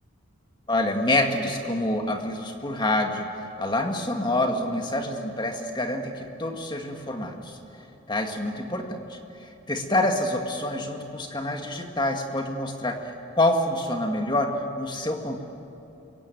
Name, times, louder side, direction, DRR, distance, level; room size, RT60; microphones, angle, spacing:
voice 1, 0.7-3.3 3.6-7.6 8.1-15.4, left 1 dB, 20° left, 3 dB, 2.1 m, -27 dB
27.0 x 23.5 x 9.4 m, 2.9 s
head